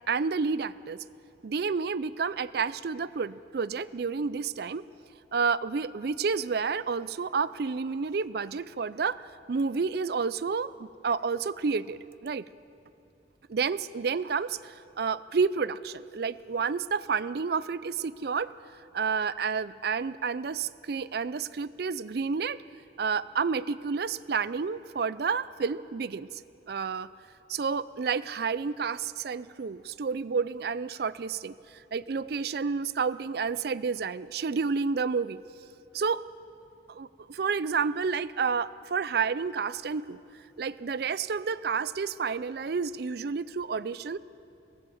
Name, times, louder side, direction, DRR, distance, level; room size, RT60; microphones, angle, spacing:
voice 1, 0.1-1.0 1.4-4.8 5.3-9.2 9.5-12.4 13.5-18.5 18.9-22.6 23.0-26.3 26.7-27.1 27.5-31.5 31.9-35.4 35.9-36.2 36.9-40.2 40.6-44.2, right 5 dB, 55° right, 16 dB, 0.4 m, -30 dB
23.0 x 16.0 x 7.2 m, 2.9 s
head